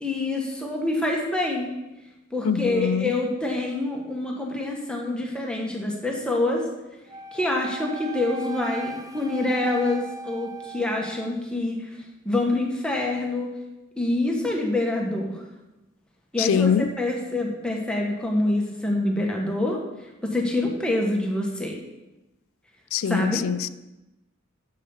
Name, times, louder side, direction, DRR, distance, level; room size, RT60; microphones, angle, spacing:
voice 1, 0.0-1.7 2.3-6.7 7.3-11.9 12.2-13.5 14.0-15.4 16.3-19.8 20.3-21.8 23.0-23.4, left 2 dB, 5° left, 1.3 m, -26 dB
voice 2, 2.4-3.1 16.4-16.9 22.9-23.7, left 7 dB, 70° left, 0.4 m, -23 dB
Wind instrument woodwind instrument, 7.1-11.4, right 1 dB, 15° right, 0.5 m, -38 dB
6.8 x 6.2 x 7.1 m
head